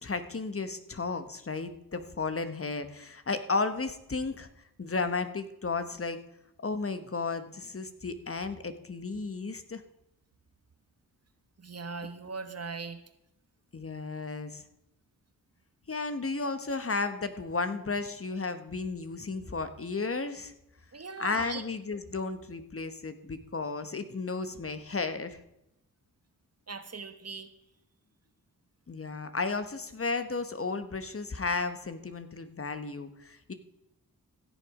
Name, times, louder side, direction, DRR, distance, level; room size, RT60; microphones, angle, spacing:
voice 1, 0.0-4.5 4.8-6.2 6.6-9.8 13.7-14.6 15.9-20.5 21.2-25.4 28.9-33.5, left 4 dB, 35° left, 10 dB, 1.1 m, -33 dB
voice 2, 11.6-13.0 20.9-21.6 26.7-27.5, right 4 dB, 40° right, 10 dB, 1.1 m, -39 dB
15.5 x 7.0 x 4.9 m, 0.84 s
cardioid pair, 50°, 38 cm